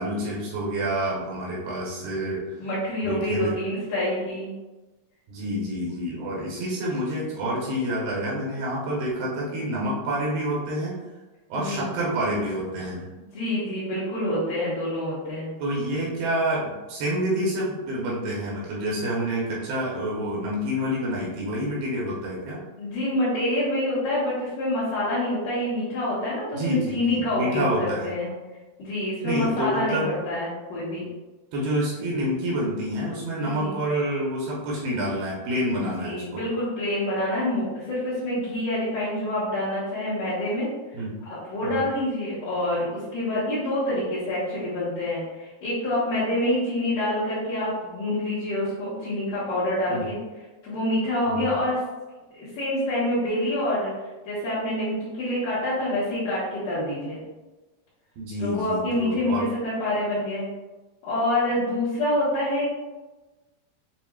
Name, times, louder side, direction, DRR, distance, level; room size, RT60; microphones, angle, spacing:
voice 1, 0.0-2.4 3.0-3.5 5.3-11.0 11.5-13.1 15.6-22.6 26.5-28.1 29.2-30.1 31.5-36.4 40.9-41.1 41.6-41.9 49.9-50.1 51.3-51.5 58.2-59.5, right 1 dB, 75° right, -5 dB, 2.5 m, -28 dB
voice 2, 2.6-4.5 11.6-11.9 13.3-15.5 22.8-28.3 28.8-30.0 30.3-31.1 33.4-33.7 35.8-40.7 41.3-50.2 50.6-51.8 52.3-53.9 54.2-57.2 58.4-60.5 61.0-62.7, left 1 dB, 65° left, -12 dB, 2.3 m, -27 dB
7.1 x 2.5 x 2.3 m, 1.2 s
omnidirectional pair, 4.7 m